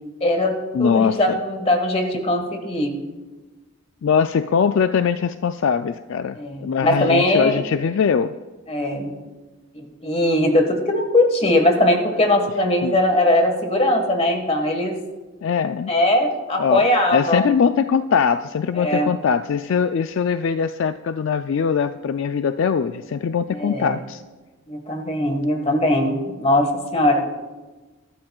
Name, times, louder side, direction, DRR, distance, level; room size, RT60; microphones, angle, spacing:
voice 1, 0.2-3.0 6.4-7.6 8.7-9.2 9.7-14.9 15.9-17.5 18.7-19.1 23.5-23.9 24.7-27.2, left 1 dB, 30° left, 4 dB, 1.5 m, -20 dB
voice 2, 0.7-1.4 4.0-8.3 12.8-13.0 15.4-15.9 16.6-24.2, left 6 dB, 60° left, 10 dB, 0.3 m, -21 dB
22.5 x 12.5 x 2.4 m, 1.2 s
head